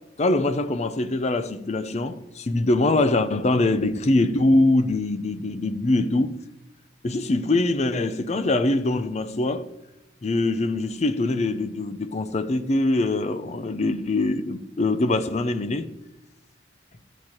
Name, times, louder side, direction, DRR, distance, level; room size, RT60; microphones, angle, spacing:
voice 1, 0.2-6.4 7.0-9.7 10.2-15.9, left 2 dB, 35° left, 0.5 m, -23 dB
12.5 x 7.9 x 2.9 m
head